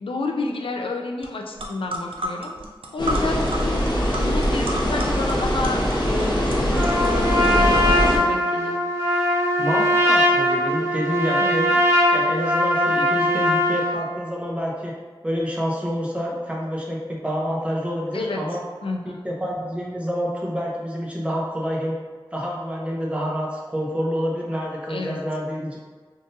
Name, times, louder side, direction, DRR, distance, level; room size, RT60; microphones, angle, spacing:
voice 1, 0.0-2.5 2.9-8.8 11.4-11.6 18.1-18.4 18.8-19.2 24.9-25.2, left 3 dB, 90° left, 1 dB, 0.4 m, -30 dB
sound 1, 1.2-1.3 1.6-8.1, right 1 dB, 85° right, 0.4 m, -33 dB
sound 2, 3.0-8.2, equal, 55° left, 0.9 m, -22 dB
Trumpet, 6.7-14.0, equal, 30° right, 1.0 m, -20 dB
voice 2, 9.6-11.8 12.1-15.0 15.2-18.6 19.0-22.0 22.3-25.8, equal, 15° right, -4 dB, 0.7 m, -27 dB
3.6 x 2.6 x 2.6 m, 1.5 s
wide cardioid pair, 70°, 9 cm